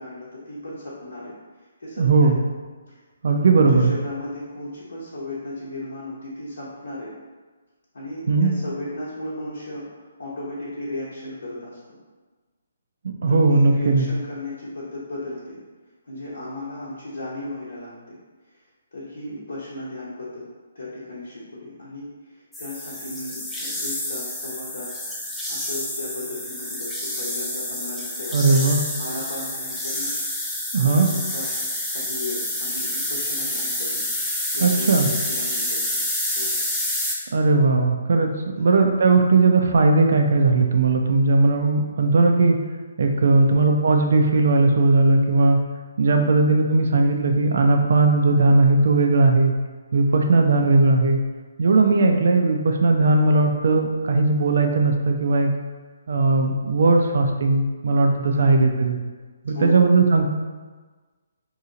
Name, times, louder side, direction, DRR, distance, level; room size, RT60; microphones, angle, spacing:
voice 1, 0.0-2.4 3.3-7.1 7.9-12.0 13.3-15.6 16.0-18.2 18.5-20.4 20.7-28.7 29.0-30.1 30.7-31.5 31.9-34.0 34.5-36.0 36.3-36.6 38.6-38.7 43.2-43.5 46.2-46.4 50.1-50.4 58.3-58.5 59.5-59.8, left 1 dB, 65° left, -9 dB, 0.8 m, -35 dB
voice 2, 2.0-2.4 3.2-3.9 8.3-8.5 13.2-14.1 28.3-28.8 30.7-31.1 34.6-35.1 37.3-38.3 38.6-42.6 43.0-45.6 46.0-49.5 49.9-51.2 51.6-55.5 56.1-59.0 59.5-60.3, right 3 dB, 55° right, 4 dB, 0.4 m, -18 dB
sound 1, 22.5-37.2, left 1 dB, 5° left, 0.5 m, -28 dB
2.9 x 2.7 x 3.7 m, 1.4 s
figure-of-eight pair, 135°, 0 cm